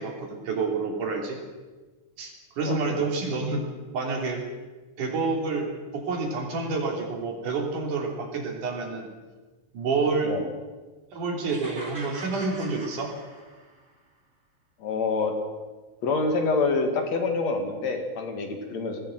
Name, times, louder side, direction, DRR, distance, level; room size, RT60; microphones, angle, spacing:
voice 1, 0.0-1.4 2.2-3.7 3.9-4.4 5.0-9.1 9.7-10.4 11.1-13.1, right 4 dB, 80° right, 1 dB, 4.8 m, -28 dB
voice 2, 2.6-3.0 10.2-10.5 14.8-15.3 16.0-19.0, left 3 dB, 60° left, 5 dB, 3.3 m, -27 dB
sound 1, 11.5-13.8, right 2 dB, 25° right, 3.7 m, -42 dB
21.0 x 16.0 x 7.9 m, 1.3 s
omnidirectional pair, 3.5 m